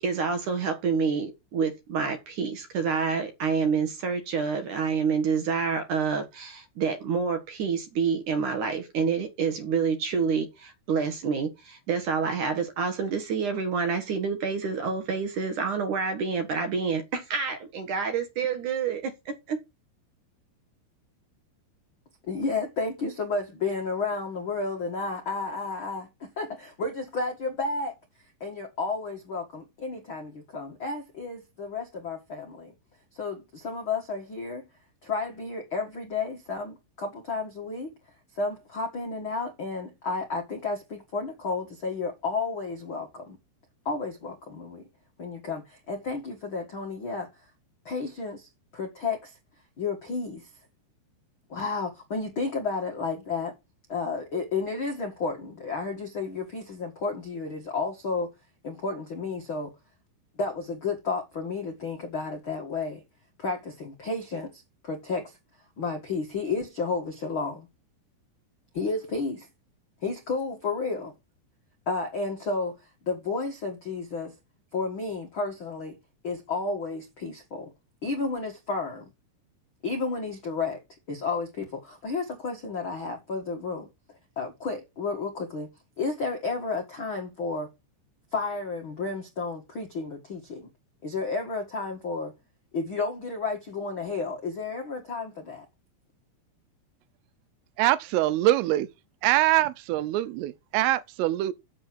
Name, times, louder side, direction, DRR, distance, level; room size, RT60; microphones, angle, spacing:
voice 1, 0.0-19.6, right 5 dB, 65° right, 2.1 m, -28 dB
voice 2, 22.2-27.9 28.4-32.7 33.1-34.7 35.0-37.9 38.3-43.4 43.8-44.9 45.2-47.5 47.8-49.4 49.8-50.5 51.5-53.5 53.9-58.3 58.6-59.7 60.4-63.0 63.4-65.4 65.8-67.7 68.7-69.5 70.0-71.1 71.8-74.3 74.7-76.0 76.2-77.7 78.0-79.1 79.8-80.8 81.1-83.9 84.3-85.7 86.0-87.7 88.3-90.7 91.0-92.3 92.7-95.6, left 4 dB, 75° left, 1.1 m, -32 dB
voice 3, 97.8-98.9 99.2-101.5, right 15 dB, 85° right, 3.4 m, -24 dB
7.7 x 7.4 x 6.2 m
omnidirectional pair, 5.7 m